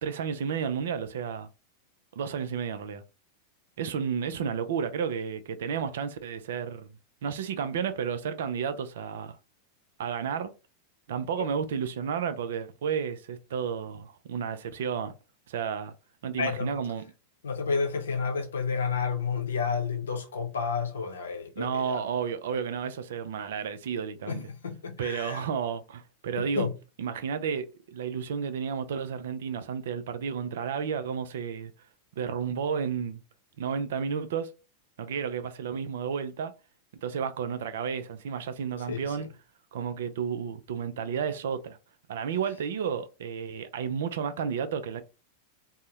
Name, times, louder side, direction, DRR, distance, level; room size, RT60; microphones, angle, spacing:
voice 1, 0.0-1.5 2.1-3.0 3.8-7.0 7.2-9.4 10.0-10.5 11.1-15.1 15.5-15.9 16.2-17.0 21.6-24.4 25.0-26.7 27.0-31.7 32.2-33.2 33.6-34.5 35.0-36.5 37.0-39.3 39.7-41.8 42.1-45.0, right 7 dB, 60° right, 0.3 m, -32 dB
voice 2, 16.4-16.7 17.4-22.0 24.3-25.5 26.4-26.7 38.9-39.2, left 5 dB, 65° left, 0.6 m, -31 dB
2.6 x 2.0 x 3.0 m
figure-of-eight pair, 90°, 0 cm